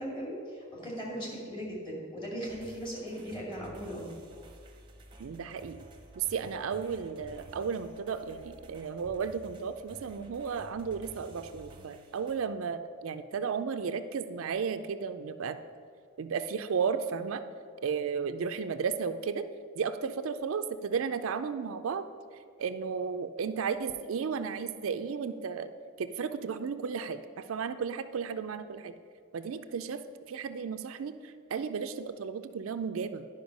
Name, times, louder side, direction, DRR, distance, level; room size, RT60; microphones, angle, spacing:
voice 1, 0.0-4.2, equal, 25° left, -3 dB, 2.1 m, -38 dB
sound 1, 2.5-12.4, right 1 dB, 20° right, 0.7 m, -52 dB
voice 2, 5.2-5.8 6.2-15.6 16.2-17.4 17.8-19.4 19.8-22.0 22.6-25.7 26.0-27.2 27.5-28.9 29.3-30.0 30.3-33.2, right 6 dB, 75° right, 10 dB, 0.4 m, -34 dB
10.5 x 5.4 x 5.2 m, 2.2 s
head